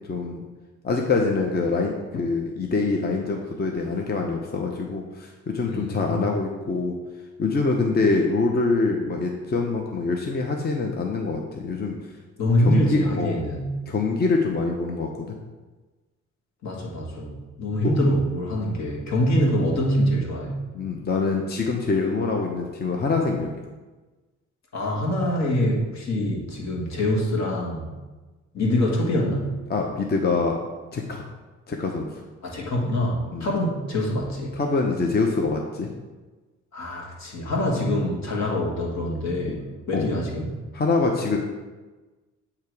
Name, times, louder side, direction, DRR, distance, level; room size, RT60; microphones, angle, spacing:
voice 1, 0.1-0.4 0.8-7.0 7.4-12.0 12.6-13.4 13.9-15.4 17.8-17.9 20.7-23.5 29.7-30.6 30.9-31.2 31.7-32.2 33.3-33.5 34.5-35.9 37.7-37.8 39.5-39.6 39.9-40.1 40.7-41.4, left 3 dB, 30° left, 1 dB, 0.7 m, -25 dB
voice 2, 5.6-6.2 12.4-13.7 16.6-20.6 24.7-27.9 28.5-29.6 32.4-34.6 36.7-39.6 39.9-40.5, left 1 dB, 65° left, -2 dB, 1.6 m, -24 dB
8.5 x 2.9 x 4.7 m, 1.2 s
cardioid pair, 90°, 30 cm